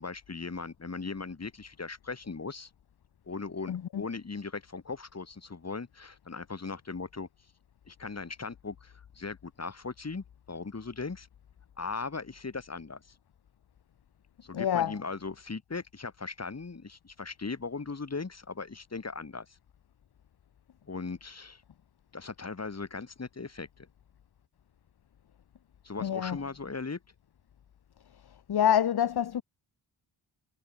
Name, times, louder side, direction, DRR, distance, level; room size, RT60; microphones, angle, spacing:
voice 1, 0.0-2.7 3.3-7.3 7.9-11.3 11.8-13.2 14.4-19.6 20.9-21.6 22.1-23.9 25.8-27.0, left 4 dB, 30° left, 2.0 m, -38 dB
voice 2, 3.7-4.0 14.5-14.9 26.0-26.4 28.5-29.4, left 10 dB, 50° left, 0.7 m, -26 dB
wide cardioid pair, 110°, 49 cm